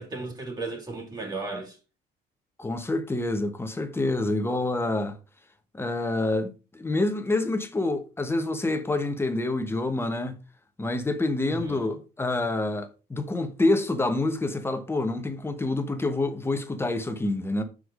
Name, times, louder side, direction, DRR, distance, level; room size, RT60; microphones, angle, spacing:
voice 1, 0.0-1.8 11.4-12.0, right 3 dB, 25° right, 2.5 m, -35 dB
voice 2, 2.6-5.2 5.7-10.3 10.8-17.6, left 2 dB, 15° left, 1.2 m, -27 dB
6.1 x 4.9 x 5.0 m
cardioid pair, 110°, 17 cm